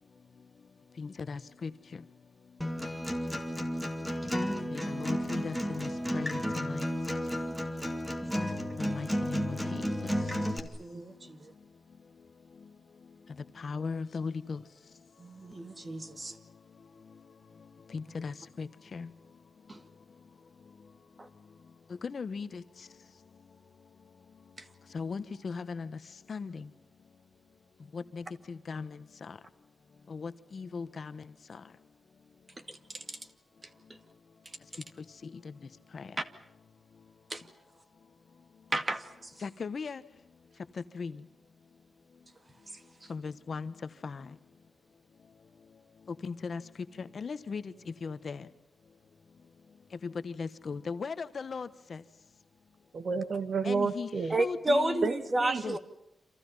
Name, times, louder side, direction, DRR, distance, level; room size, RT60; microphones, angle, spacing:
voice 1, 1.0-2.0 4.7-6.9 8.8-9.9 13.6-14.6 17.9-19.1 22.0-22.6 24.9-26.0 26.3-26.7 27.9-29.4 30.1-31.2 31.5-31.6 35.2-35.5 35.9-36.1 39.4-40.0 40.9-41.2 43.1-43.7 44.0-44.3 46.2-46.6 47.0-48.5 50.0-52.0 53.6-54.1 54.4-55.1 55.6-55.8, left 5 dB, 50° left, 13 dB, 1.3 m, -38 dB
Acoustic guitar, 2.6-10.6, equal, ahead, 2.7 m, -32 dB
voice 2, 10.5-11.5 15.2-16.4 19.7-19.8 21.2-21.3 24.6-24.7 32.7-33.2 33.6-34.0 34.5-34.6 36.2-36.3 37.3-37.4 38.7-39.4 42.7-43.1 54.3-55.8, right 1 dB, 25° right, 9 dB, 2.2 m, -33 dB
voice 3, 52.9-54.4 55.0-55.8, right 4 dB, 55° right, 9 dB, 2.3 m, -31 dB
29.5 x 27.0 x 5.6 m, 0.81 s
wide cardioid pair, 145°, 0 cm